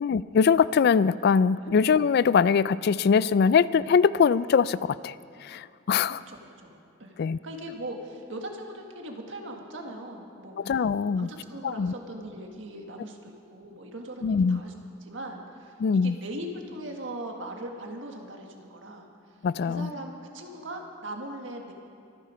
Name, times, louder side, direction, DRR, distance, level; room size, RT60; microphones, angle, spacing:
voice 1, 0.0-5.2 5.4-6.2 7.2-7.4 10.6-11.3 11.6-11.9 14.2-14.6 15.8-16.2 19.4-19.9, left 6 dB, 55° left, 18 dB, 0.3 m, -22 dB
voice 2, 6.1-7.1 7.4-10.7 11.0-14.7 15.0-15.8 16.0-19.1 19.6-21.7, right 1 dB, 70° right, 2 dB, 1.8 m, -40 dB
24.0 x 10.0 x 5.0 m, 2.5 s
head